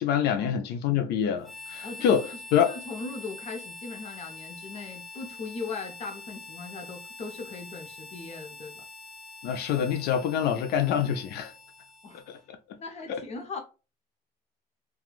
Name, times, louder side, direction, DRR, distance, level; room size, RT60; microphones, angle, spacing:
voice 1, 0.0-2.7 9.4-11.5 12.3-12.4 12.7-12.8 13.1-13.2, left 8 dB, 75° left, 0.5 m, -26 dB
Harmonica, 1.4-12.5, left 3 dB, ahead, 0.6 m, -45 dB
voice 2, 1.8-8.8 12.0-12.2 12.8-13.6, left 4 dB, 40° left, 0.8 m, -39 dB
3.0 x 2.4 x 2.3 m
cardioid pair, 110°, 17 cm